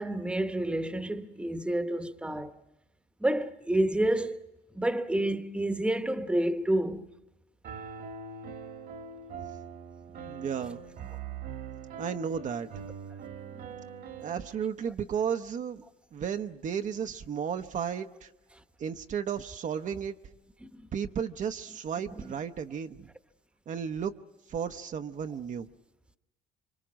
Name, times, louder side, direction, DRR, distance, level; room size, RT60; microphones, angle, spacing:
voice 1, 0.0-2.5 3.2-4.4 4.7-7.1 20.6-20.8 22.2-22.3, right 1 dB, 5° right, 1.1 m, -29 dB
Piano, 7.6-14.5, right 6 dB, 65° right, 1.7 m, -42 dB
voice 2, 10.3-10.8 12.0-12.8 14.2-15.8 16.1-18.3 18.8-20.1 20.9-23.1 23.7-24.1 24.5-25.7, right 7 dB, 45° right, 0.8 m, -33 dB
26.5 x 24.0 x 6.2 m
cardioid pair, 110°, 17 cm